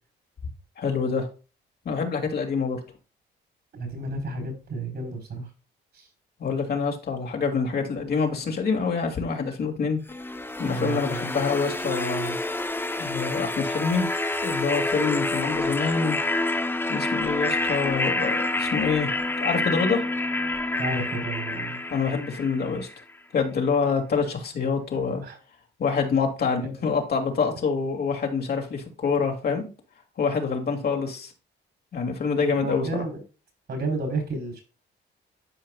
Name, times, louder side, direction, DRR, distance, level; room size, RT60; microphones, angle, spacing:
voice 1, 0.8-1.3 1.9-2.8 6.4-10.0 10.6-12.4 13.0-14.2 14.4-16.2 16.9-20.0 21.9-22.9 23.3-25.2 25.8-29.6 30.2-31.3 31.9-33.0, left 5 dB, 55° left, 2.3 m, -26 dB
voice 2, 3.7-5.5 5.9-6.1 10.6-11.2 20.8-21.8 24.9-25.4 32.6-33.2 33.7-34.6, right 2 dB, 60° right, 4.4 m, -32 dB
sound 1, 10.1-23.0, left 2 dB, 10° left, 0.8 m, -28 dB
12.0 x 4.8 x 2.3 m
cardioid pair, 90°, 20 cm